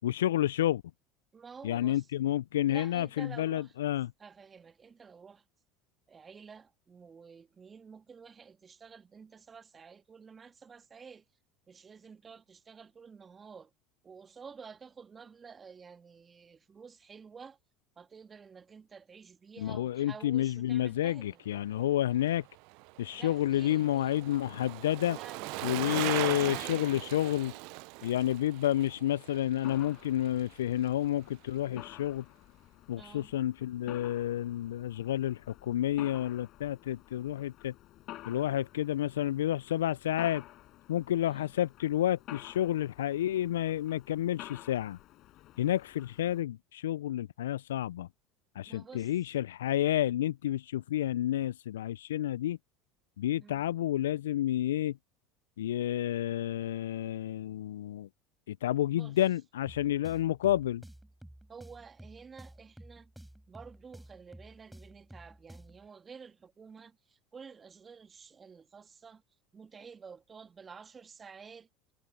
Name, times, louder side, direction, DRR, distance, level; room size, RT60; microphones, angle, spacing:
voice 1, 0.0-0.8 1.6-4.1 19.6-22.5 23.0-25.2 25.6-27.5 28.0-32.3 32.9-37.7 38.3-40.4 40.9-45.0 45.6-48.1 48.6-52.6 53.2-55.0 55.6-58.1 58.5-60.8, left 12 dB, 80° left, 0.3 m, -30 dB
voice 2, 1.3-2.1 2.7-3.7 4.2-5.5 6.1-11.3 11.7-13.7 14.0-17.6 18.0-21.4 23.1-24.2 25.1-26.9 32.9-33.4 41.2-41.5 48.7-49.1 53.4-53.7 55.6-55.7 58.9-59.2 61.5-63.1 63.5-69.2 69.5-71.7, right 6 dB, 30° right, 1.8 m, -51 dB
Bicycle, 22.1-30.6 30.9-31.0, right 29 dB, 65° right, 0.4 m, -39 dB
Mechanisms, 29.6-46.4, left 15 dB, 55° left, 5.9 m, -51 dB
sound 1, 59.7-65.9, right 1 dB, 5° right, 3.8 m, -52 dB
hypercardioid pair, 75°, 0 cm